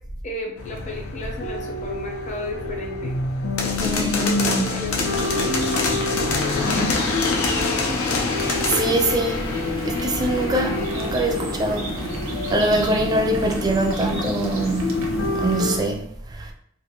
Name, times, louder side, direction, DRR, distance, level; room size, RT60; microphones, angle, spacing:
voice 1, 0.2-3.1 3.9-5.6 6.4-8.0, left 2 dB, 35° left, 0.7 m, -34 dB
sound 1, 0.6-15.8, left 3 dB, 85° left, 0.5 m, -26 dB
voice 2, 3.8-4.7 6.8-6.9 8.5-9.5 9.8-11.9 12.5-14.9 15.4-16.0 16.3-16.5, right 1 dB, 20° right, 0.3 m, -23 dB
sound 2, 4.9-15.8, equal, 70° right, 0.6 m, -31 dB
2.5 x 2.5 x 2.8 m
head